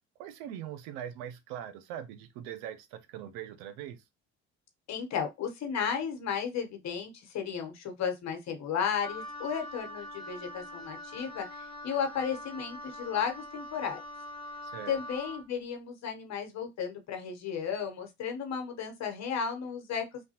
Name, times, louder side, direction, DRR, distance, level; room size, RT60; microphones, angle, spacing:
voice 1, 0.2-4.0 14.6-15.0, right 10 dB, 85° right, 0.6 m, -41 dB
voice 2, 4.9-14.0 14.9-20.2, left 7 dB, 55° left, 1.0 m, -34 dB
Wind instrument woodwind instrument, 9.0-15.5, left 1 dB, 15° left, 1.1 m, -43 dB
3.2 x 2.1 x 2.8 m
supercardioid pair, 70°, 33 cm